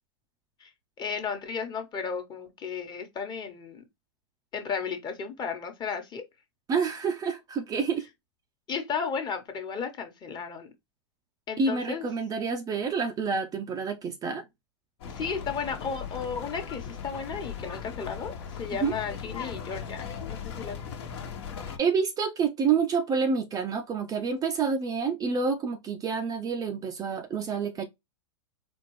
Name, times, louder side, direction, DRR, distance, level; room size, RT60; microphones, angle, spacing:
voice 1, 1.0-3.8 4.5-6.2 8.7-10.7 11.5-12.1 15.1-20.9, left 6 dB, 30° left, 1.2 m, -34 dB
voice 2, 6.7-8.1 11.6-14.4 18.8-19.0 21.8-27.8, right 5 dB, 25° right, 0.5 m, -28 dB
sound 1, 15.0-21.8, left 7 dB, 60° left, 1.2 m, -38 dB
4.3 x 2.4 x 3.1 m
hypercardioid pair, 105°, 16 cm